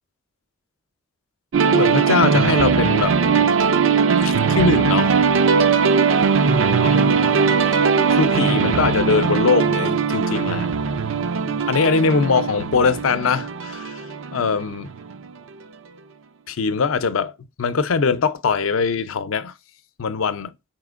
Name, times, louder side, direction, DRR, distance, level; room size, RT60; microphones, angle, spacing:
Arpeggiator End Credits, 1.5-15.3, right 5 dB, 70° right, 0.5 m, -19 dB
voice 1, 1.7-3.2 4.2-5.2 5.5-5.6 6.8-7.3 8.1-10.7 11.7-14.1 14.3-14.9 16.5-19.5 20.0-20.6, left 5 dB, 80° left, 0.5 m, -21 dB
5.0 x 4.2 x 2.4 m
head